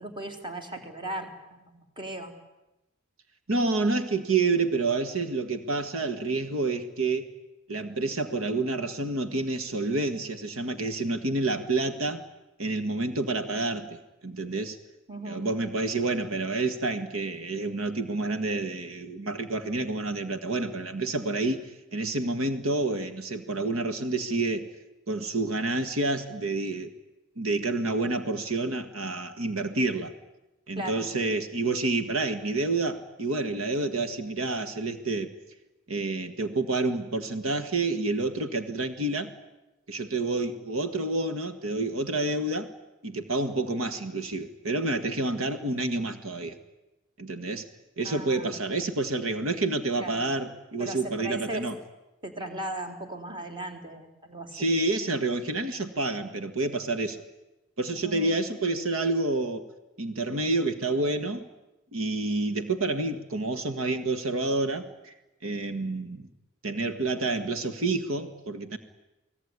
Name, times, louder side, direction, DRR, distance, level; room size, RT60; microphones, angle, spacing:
voice 1, 0.0-2.3 15.1-15.4 30.8-31.0 48.0-48.5 50.0-50.2 50.8-51.7 52.2-54.7 57.9-58.4, right 1 dB, 25° right, 5 dB, 3.7 m, -37 dB
voice 2, 3.5-7.3 7.7-12.2 12.6-14.8 15.3-24.7 25.1-26.9 27.4-30.1 30.7-35.3 35.9-39.3 39.9-42.7 43.0-46.6 47.2-47.7 48.0-51.8 54.5-57.2 57.8-59.7 60.0-61.4 61.9-65.1 65.4-66.3 66.6-68.8, right 2 dB, 80° right, 9 dB, 1.7 m, -29 dB
29.5 x 20.0 x 9.7 m, 1.0 s
head